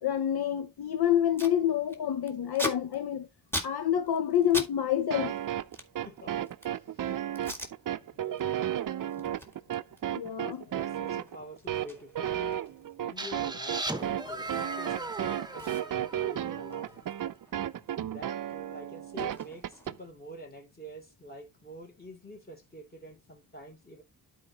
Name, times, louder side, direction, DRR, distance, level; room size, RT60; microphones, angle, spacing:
voice 1, 0.0-3.3 3.6-5.4 10.2-10.6, left 10 dB, 70° left, 0.9 m, -27 dB
Packing tape duct tape, 1.4-1.6 1.9-4.7 5.0-6.8 7.3-7.7 8.2-8.4 8.8-15.0 15.2-15.3 15.6-18.0 18.2-20.2, left 1 dB, 5° left, 1.8 m, -41 dB
sound 1, 5.1-20.0, right 11 dB, 55° right, 0.6 m, -33 dB
voice 2, 6.0-7.1 8.1-8.5 10.7-17.0 17.9-24.0, equal, 25° left, 3.1 m, -47 dB
sound 2, 13.2-16.9, right 2 dB, 10° right, 1.0 m, -38 dB
11.5 x 4.7 x 2.9 m
wide cardioid pair, 95°, 39 cm